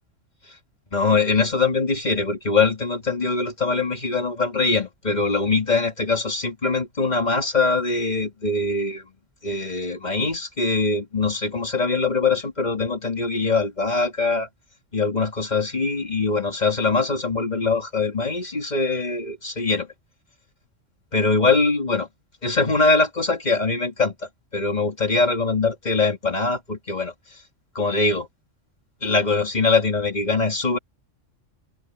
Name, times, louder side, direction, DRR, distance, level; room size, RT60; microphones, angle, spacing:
voice 1, 0.9-9.1 9.4-14.5 14.9-19.9 21.1-22.1 22.4-27.1 27.7-28.3 29.0-30.8, left 3 dB, 35° left, 2.2 m, -22 dB
omnidirectional pair, 1.3 m